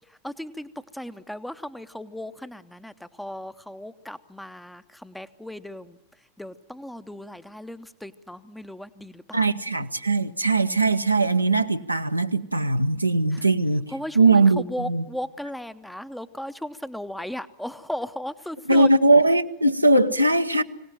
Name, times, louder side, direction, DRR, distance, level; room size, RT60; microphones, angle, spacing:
voice 1, 0.1-6.0 6.4-9.5 13.3-13.4 13.9-18.9, left 1 dB, 5° left, 0.8 m, -36 dB
voice 2, 9.3-13.9 14.1-15.0 18.7-20.6, right 2 dB, 85° right, 0.9 m, -20 dB
25.0 x 17.5 x 9.1 m
figure-of-eight pair, 90°, 0 cm